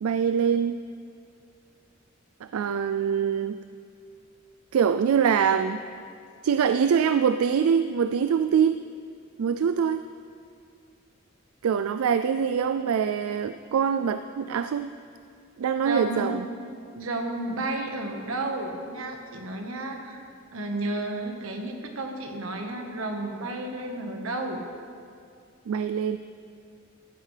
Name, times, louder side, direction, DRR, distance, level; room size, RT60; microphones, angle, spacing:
voice 1, 0.0-0.8 2.5-3.6 4.7-5.8 6.4-8.8 9.4-10.0 11.6-14.9 15.6-16.4 25.7-26.2, right 7 dB, 90° right, 10 dB, 0.4 m, -24 dB
voice 2, 15.8-16.4 16.9-20.3 20.5-24.6, right 2 dB, 75° right, 3 dB, 1.4 m, -32 dB
15.0 x 12.5 x 3.3 m, 2.3 s
head